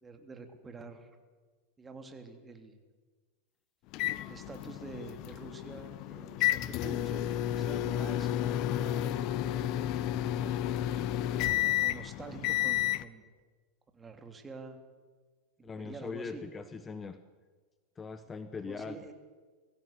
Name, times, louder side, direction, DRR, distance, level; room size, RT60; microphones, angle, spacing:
voice 1, 0.0-1.1 1.8-2.8 4.2-8.3 8.6-9.9 10.2-10.5 11.3-13.2 13.9-14.8 15.6-16.4 18.6-19.1, right 3 dB, 20° right, 5 dB, 3.2 m, -47 dB
sound 1, 3.9-13.0, left 13 dB, 50° left, 1.0 m, -31 dB
voice 2, 15.6-17.2 18.0-19.1, left 4 dB, 20° left, 11 dB, 1.2 m, -41 dB
23.0 x 15.5 x 8.2 m, 1.4 s
hypercardioid pair, 95°, 0 cm